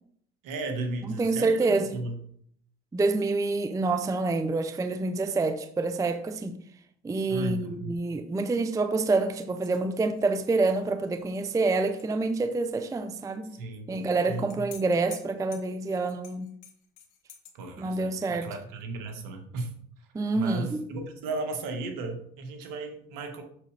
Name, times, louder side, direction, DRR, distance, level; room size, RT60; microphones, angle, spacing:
voice 1, 0.4-2.2 7.3-7.9 13.5-14.0 14.3-14.7 17.5-19.7 20.3-23.4, right 3 dB, 60° right, 1.7 m, -35 dB
voice 2, 1.1-2.0 2.9-6.6 7.0-13.5 13.9-16.5 17.8-18.5 20.1-20.8, right 3 dB, 10° right, 0.5 m, -27 dB
sound 1, 9.4-12.2 12.4-12.5 13.9-17.5, left 9 dB, 75° left, 1.4 m, -51 dB
6.7 x 6.1 x 3.4 m
supercardioid pair, 85°, 36 cm